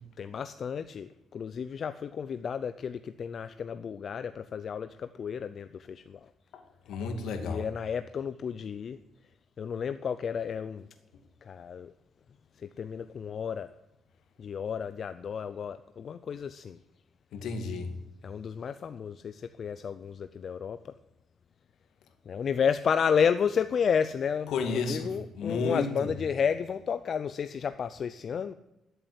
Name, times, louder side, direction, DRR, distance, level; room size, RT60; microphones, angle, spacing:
voice 1, 0.2-6.3 7.5-9.0 9.6-10.9 11.4-11.9 12.6-13.7 14.4-16.8 18.2-20.9 22.3-28.5, left 7 dB, 55° left, 12 dB, 0.5 m, -32 dB
voice 2, 6.9-7.6 17.3-17.9 24.5-25.1 25.4-25.9, left 4 dB, 80° left, 7 dB, 2.1 m, -31 dB
12.5 x 8.0 x 9.6 m, 0.94 s
cardioid pair, 90°, 0 cm